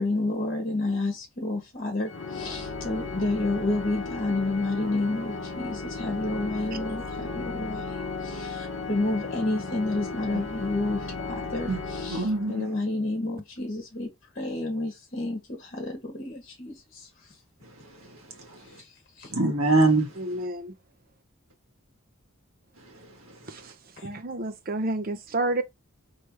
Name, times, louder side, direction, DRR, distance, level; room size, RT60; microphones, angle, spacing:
voice 1, 0.0-11.0 11.5-17.1 18.6-19.3 24.0-24.1, left 2 dB, 40° left, 1.4 m, -30 dB
Organ, 2.1-12.8, left 3 dB, 60° left, 0.8 m, -35 dB
voice 2, 12.1-12.7 18.1-18.6 19.3-20.1, right 2 dB, 75° right, 1.5 m, -24 dB
voice 3, 20.2-20.8 23.4-23.8 24.0-25.6, right 2 dB, 40° right, 0.6 m, -30 dB
3.4 x 3.1 x 4.5 m
head